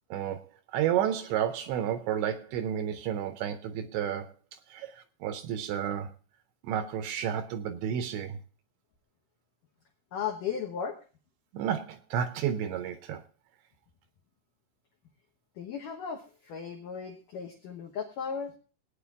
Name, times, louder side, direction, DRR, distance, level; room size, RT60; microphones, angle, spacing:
voice 1, 0.1-0.4 0.7-6.1 6.6-8.4 11.5-13.2, right 9 dB, 80° right, 2.7 m, -31 dB
voice 2, 10.1-11.0 15.6-18.5, left 7 dB, 85° left, 1.8 m, -36 dB
18.0 x 9.4 x 3.6 m
omnidirectional pair, 5.6 m